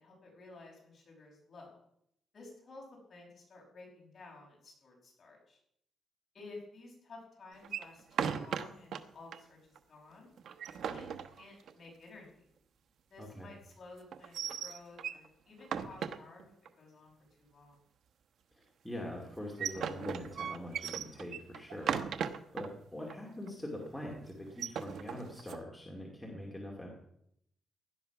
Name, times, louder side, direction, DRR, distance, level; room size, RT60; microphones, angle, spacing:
voice 1, 0.0-1.8 2.3-5.6 6.3-9.6 9.9-10.3 10.9-12.5 13.1-17.1 17.4-17.8 22.0-22.5, left 3 dB, 30° left, -1 dB, 5.5 m, -53 dB
sound 1, 7.6-9.0 9.3-9.4 9.7-9.8 10.4-11.9 14.1-15.3 15.6-16.7 19.3-22.7 23.1-23.2 23.5-23.8 24.4-25.6, right 7 dB, 65° right, 1.0 m, -37 dB
voice 2, 13.2-13.5 18.5-22.0 22.5-26.9, left 1 dB, 5° left, -2 dB, 2.4 m, -43 dB
16.5 x 11.5 x 5.9 m, 0.73 s
cardioid pair, 165°, 0 cm